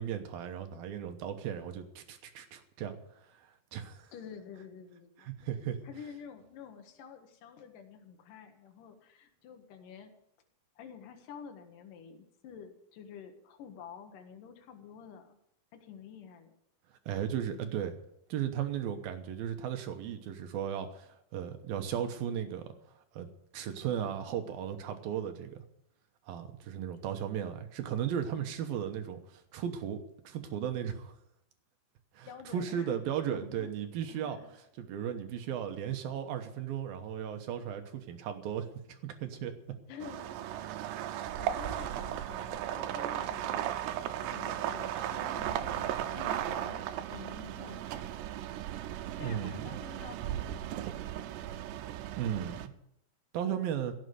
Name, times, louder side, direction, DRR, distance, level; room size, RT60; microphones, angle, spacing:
voice 1, 0.0-3.0 3.3-4.1 5.2-5.8 17.1-18.0 18.3-22.7 23.1-23.3 23.5-25.6 26.3-31.1 32.1-34.4 34.8-39.5 49.2-49.7 52.2-52.7 53.3-53.9, right 9 dB, 70° right, 7 dB, 2.7 m, -36 dB
voice 2, 4.1-5.3 5.8-10.1 10.8-15.4 15.7-16.5 32.2-33.0 33.3-33.7 34.1-34.5 39.9-40.4 40.9-43.8 44.0-48.1 49.2-50.8, left 7 dB, 60° left, 5 dB, 2.9 m, -49 dB
sound 1, 40.0-52.7, right 11 dB, 90° right, 3.0 m, -36 dB
16.5 x 7.8 x 7.9 m, 0.78 s
omnidirectional pair, 4.8 m